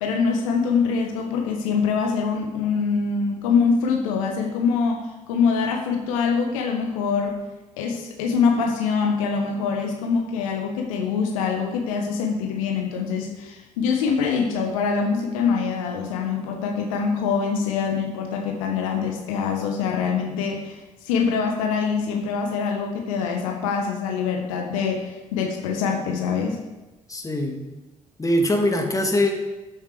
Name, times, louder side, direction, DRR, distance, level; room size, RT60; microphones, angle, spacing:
voice 1, 0.0-7.4 7.8-26.6, left 5 dB, 75° left, 2 dB, 1.4 m, -24 dB
voice 2, 27.1-27.6 28.2-29.3, left 1 dB, 20° left, 4 dB, 2.2 m, -22 dB
12.5 x 7.4 x 5.0 m, 1.1 s
figure-of-eight pair, 45°, 18 cm